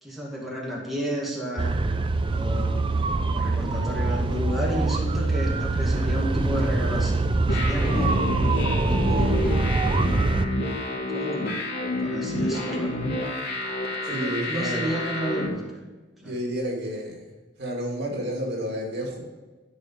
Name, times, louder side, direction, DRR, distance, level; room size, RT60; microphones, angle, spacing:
voice 1, 0.0-1.8 2.3-2.8 3.2-7.2 7.5-8.2 8.9-9.5 11.1-11.5 12.0-12.9 14.1-15.8 16.2-16.3, equal, ahead, -4 dB, 2.1 m, -32 dB
sound 1, 1.6-10.5, right 2 dB, 25° right, 0.5 m, -24 dB
voice 2, 2.1-2.5 14.0-14.9 16.2-17.2 17.6-19.2, equal, 60° right, -1 dB, 2.7 m, -31 dB
sound 2, 7.5-15.5, left 1 dB, 60° left, 2.9 m, -29 dB
13.0 x 4.9 x 7.4 m, 1.3 s
head